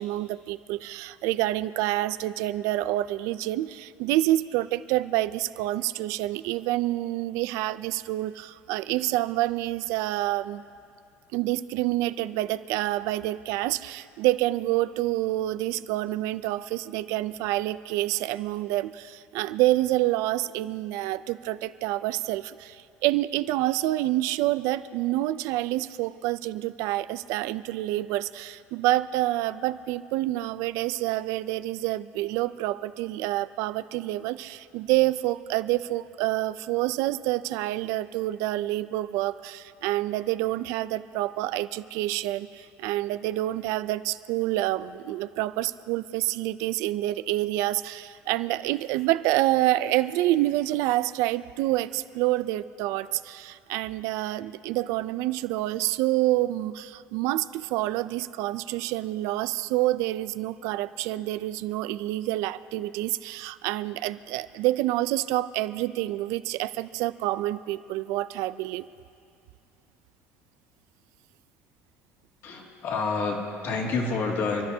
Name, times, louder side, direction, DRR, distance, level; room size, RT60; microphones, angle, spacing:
voice 1, 0.0-10.6 11.3-68.9, right 16 dB, 70° right, 14 dB, 0.5 m, -27 dB
voice 2, 72.4-74.7, left 4 dB, 45° left, -1 dB, 2.3 m, -28 dB
28.5 x 13.0 x 2.8 m, 2.4 s
cardioid pair, 160°, 5 cm